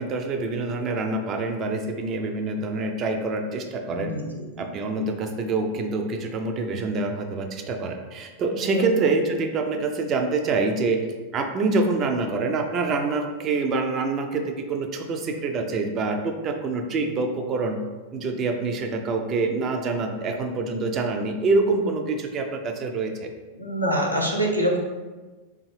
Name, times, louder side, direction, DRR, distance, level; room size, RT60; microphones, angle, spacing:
voice 1, 0.0-4.1 4.6-11.1 11.3-17.8 18.1-23.3, right 3 dB, 30° right, 4 dB, 0.4 m, -26 dB
voice 2, 3.9-4.6 8.6-8.9 23.6-24.8, equal, 90° right, -2 dB, 0.5 m, -26 dB
3.6 x 2.5 x 3.2 m, 1.3 s
figure-of-eight pair, 90°, 0 cm